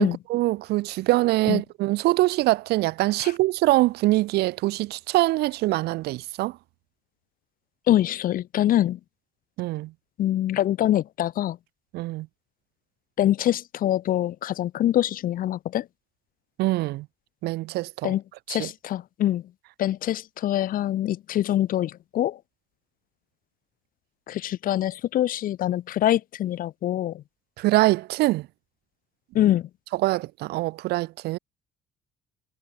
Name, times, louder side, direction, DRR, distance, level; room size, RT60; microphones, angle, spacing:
voice 1, 0.0-6.6 9.6-9.9 11.9-12.3 16.6-17.1 17.4-18.1 18.5-18.7 27.6-28.5 29.9-31.4, right 18 dB, 75° right, 0.5 m, -24 dB
voice 2, 7.9-9.0 10.2-11.6 13.2-15.9 18.0-18.2 18.5-19.4 19.8-22.4 24.3-27.2 29.3-29.7, left 12 dB, 55° left, 0.7 m, -24 dB
cardioid pair, 110°, 17 cm